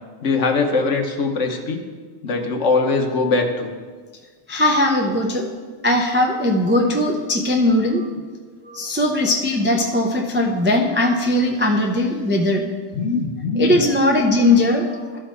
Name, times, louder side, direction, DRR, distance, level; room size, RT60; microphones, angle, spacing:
voice 1, 0.2-1.8 2.2-3.7 12.9-13.8, left 3 dB, 65° left, 4 dB, 1.2 m, -21 dB
voice 2, 4.5-5.5 5.8-8.1 8.6-12.7 13.6-15.2, left 1 dB, 15° right, 0 dB, 0.3 m, -19 dB
13.0 x 4.4 x 4.5 m, 1.5 s
omnidirectional pair, 1.4 m